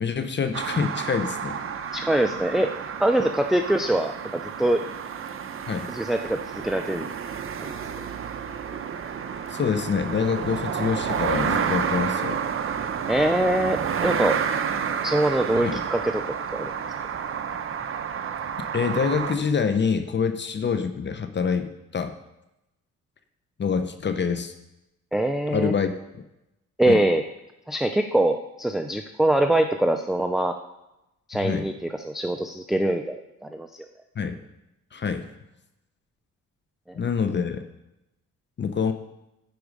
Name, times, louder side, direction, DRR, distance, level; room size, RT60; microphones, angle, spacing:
voice 1, 0.0-1.6 5.7-5.9 9.5-12.4 15.5-15.8 18.7-22.1 23.6-24.5 25.5-26.2 26.9-27.0 31.3-31.7 34.2-34.4 34.9-35.3 37.0-37.6 38.6-38.9, left 6 dB, 35° left, 9 dB, 0.7 m, -26 dB
sound 1, 0.5-19.4, right 7 dB, 45° right, 0.8 m, -30 dB
voice 2, 1.9-2.7 3.0-4.9 5.9-7.0 7.6-7.7 13.1-14.4 15.0-16.2 16.5-16.6 25.1-25.7 26.8-27.2 27.7-30.6 31.3-31.7 32.0-33.8, right 1 dB, ahead, 6 dB, 0.5 m, -23 dB
9.9 x 4.7 x 5.3 m, 0.91 s
cardioid pair, 90°, 30 cm